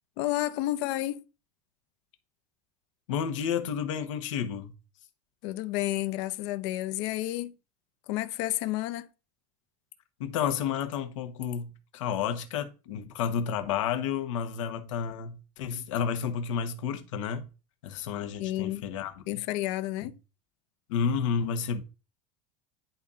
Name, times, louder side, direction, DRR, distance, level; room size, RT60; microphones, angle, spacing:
voice 1, 0.2-1.2 5.4-7.5 8.1-9.1 18.4-18.9 19.3-20.1, left 15 dB, 65° left, 0.7 m, -31 dB
voice 2, 3.1-4.7 10.2-17.5 17.8-19.4 20.0-20.1 20.9-21.8, left 7 dB, 90° left, 1.3 m, -31 dB
10.5 x 4.2 x 3.8 m
supercardioid pair, 145°, 16 cm